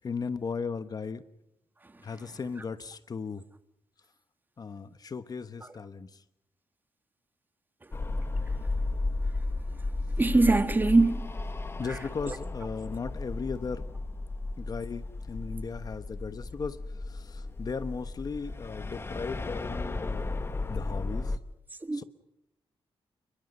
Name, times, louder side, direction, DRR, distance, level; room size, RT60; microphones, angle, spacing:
voice 1, 0.0-1.2 2.0-3.4 4.6-6.1 11.8-13.9 14.6-16.8 17.1-20.4 20.7-21.3 21.9-22.0, left 5 dB, 40° left, 1.1 m, -36 dB
sound 1, 7.9-21.4, left 2 dB, 25° left, 1.4 m, -34 dB
voice 2, 10.2-11.3 11.8-12.4 21.8-22.0, right 3 dB, 20° right, 1.6 m, -24 dB
29.0 x 22.0 x 5.4 m
cardioid pair, 120°, 10 cm